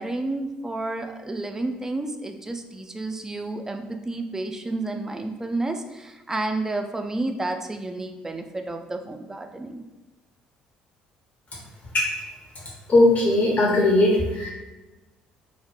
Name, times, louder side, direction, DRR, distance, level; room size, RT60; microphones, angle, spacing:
voice 1, 0.0-9.8, right 2 dB, 15° right, 5 dB, 0.3 m, -30 dB
voice 2, 12.9-14.5, left 2 dB, 40° left, -3 dB, 0.7 m, -18 dB
2.1 x 2.1 x 3.1 m, 1.1 s
hypercardioid pair, 55°, 4 cm